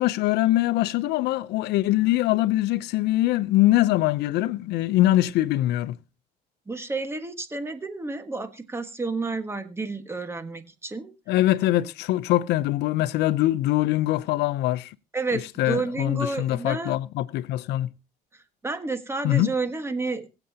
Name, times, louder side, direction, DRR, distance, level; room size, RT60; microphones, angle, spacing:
voice 1, 0.0-6.0 11.3-14.9 15.6-17.9 19.2-19.5, left 15 dB, 85° left, 0.6 m, -23 dB
voice 2, 6.7-11.1 15.1-17.0 18.6-20.3, right 3 dB, 15° right, 1.5 m, -30 dB
23.0 x 7.9 x 2.8 m
cardioid pair, 110°, 17 cm